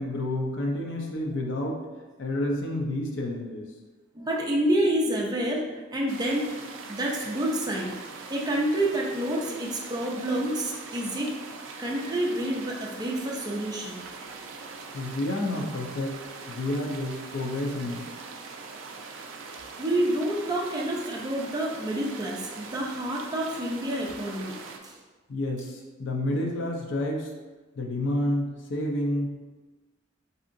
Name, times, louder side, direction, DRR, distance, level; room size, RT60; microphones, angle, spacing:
voice 1, 0.0-1.8 2.2-3.7 14.9-16.2 16.5-18.0 25.3-27.3 27.8-29.4, left 1 dB, 70° left, 0 dB, 0.5 m, -29 dB
voice 2, 4.1-5.6 5.9-6.5 6.9-7.9 8.3-11.3 11.8-14.1 19.8-25.0, right 1 dB, 20° right, -2 dB, 0.5 m, -28 dB
sound 1, 6.1-24.8, right 4 dB, 80° right, 0.4 m, -42 dB
3.6 x 2.7 x 2.5 m, 1.2 s
head